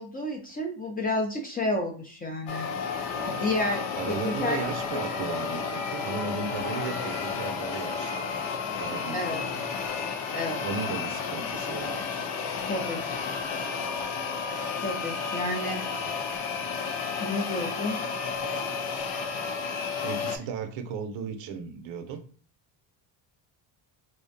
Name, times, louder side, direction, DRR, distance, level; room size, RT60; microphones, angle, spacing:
voice 1, 0.0-3.8 4.2-4.6 9.1-9.4 10.3-10.6 12.7-13.0 14.8-15.8 17.2-18.0, left 2 dB, 20° left, 1 dB, 0.4 m, -31 dB
sound 1, 2.5-20.4, left 5 dB, 75° left, 0.6 m, -32 dB
voice 2, 3.1-3.6 4.0-8.3 8.8-9.7 10.6-12.3 20.0-22.2, right 6 dB, 65° right, 7 dB, 0.6 m, -36 dB
2.5 x 2.1 x 2.5 m, 0.42 s
supercardioid pair, 90°, 49 cm